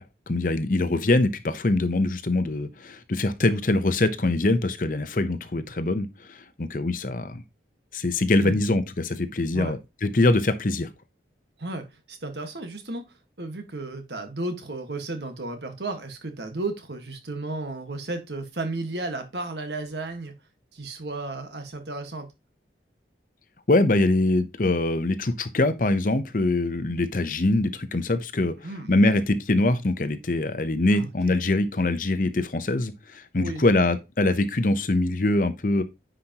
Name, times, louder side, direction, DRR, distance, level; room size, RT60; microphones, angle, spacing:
voice 1, 0.3-7.4 7.9-10.9 23.7-28.5 28.9-35.8, left 2 dB, 50° left, 0.8 m, -23 dB
voice 2, 11.6-13.0 13.4-20.3 20.7-22.3 28.6-28.9 30.9-31.1 33.4-33.6, right 2 dB, 75° right, 1.6 m, -33 dB
9.7 x 5.1 x 2.9 m
head